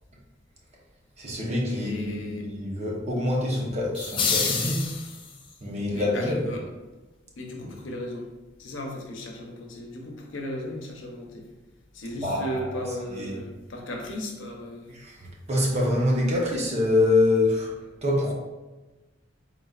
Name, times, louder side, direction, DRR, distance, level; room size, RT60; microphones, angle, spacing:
voice 1, 1.2-4.9 5.6-6.4 12.2-13.4 14.9-18.3, left 2 dB, 35° right, -2 dB, 0.8 m, -26 dB
voice 2, 1.7-2.5 5.9-6.6 7.4-8.3 8.6-11.5 11.9-15.0, left 1 dB, 80° left, 1 dB, 0.8 m, -35 dB
sound 1, 3.9-5.5, left 5 dB, 25° left, 0.4 m, -28 dB
4.0 x 3.8 x 2.4 m, 1.2 s
head